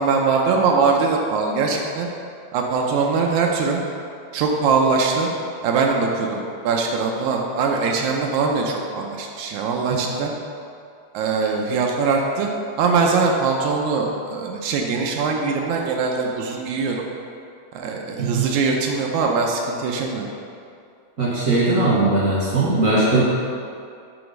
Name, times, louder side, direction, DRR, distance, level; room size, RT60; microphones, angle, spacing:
voice 1, 0.0-2.1 2.5-3.8 4.3-5.3 5.6-10.3 11.1-12.5 12.8-17.0 17.7-20.3, right 4 dB, 85° right, 1 dB, 2.0 m, -22 dB
voice 2, 21.2-23.2, right 2 dB, 60° right, -7 dB, 0.8 m, -19 dB
7.8 x 4.0 x 5.2 m, 2.4 s
omnidirectional pair, 3.3 m